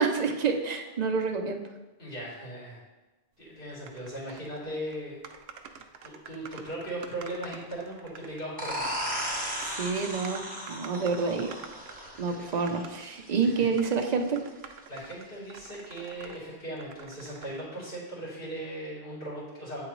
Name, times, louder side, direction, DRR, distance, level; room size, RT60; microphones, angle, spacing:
voice 1, 0.0-1.6 9.7-10.4 10.7-11.6 12.2-14.4, right 5 dB, 50° right, 4 dB, 0.6 m, -28 dB
voice 2, 2.0-2.8 3.4-5.2 5.6-9.0 13.4-13.5 14.9-19.9, right 1 dB, 60° left, -7 dB, 2.4 m, -38 dB
sound 1, 3.9-4.6 4.9-5.0 5.2-12.2 12.7-13.0 13.5-16.4 16.8-17.6, right 6 dB, 85° right, 0.8 m, -47 dB
sound 2, 8.6-14.0, equal, 10° right, 1.0 m, -36 dB
8.5 x 3.8 x 3.0 m, 1.2 s
omnidirectional pair, 1.0 m